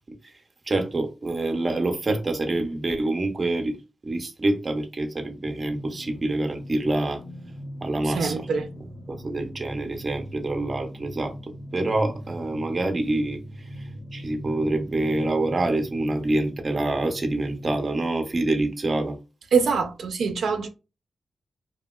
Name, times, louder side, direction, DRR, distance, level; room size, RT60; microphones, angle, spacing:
voice 1, 0.7-3.8 4.0-7.2 7.8-8.5 9.1-19.2, right 2 dB, 30° right, 0.6 m, -26 dB
sound 1, 5.5-17.8, equal, 80° left, 0.8 m, -40 dB
voice 2, 8.0-8.7 19.5-20.7, right 5 dB, 75° right, 0.4 m, -24 dB
2.7 x 2.7 x 2.3 m
wide cardioid pair, 125°, 0 cm